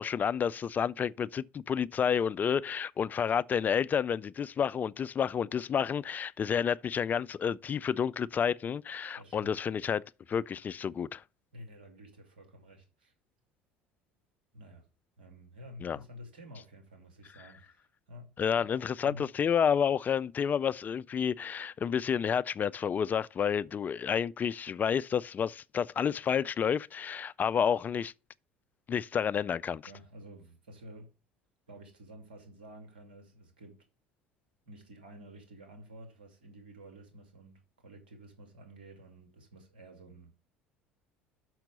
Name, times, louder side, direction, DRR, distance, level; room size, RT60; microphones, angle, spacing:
voice 1, 0.0-10.0 10.3-11.2 15.8-16.0 18.4-28.1 28.9-29.8, left 7 dB, 35° left, 0.3 m, -30 dB
voice 2, 9.1-9.6 11.5-13.1 14.5-14.9 15.2-18.7 19.0-19.3 29.8-31.1 31.7-33.8 34.7-40.3, equal, 85° right, 2.5 m, -51 dB
6.2 x 5.9 x 6.7 m
hypercardioid pair, 65°, 5 cm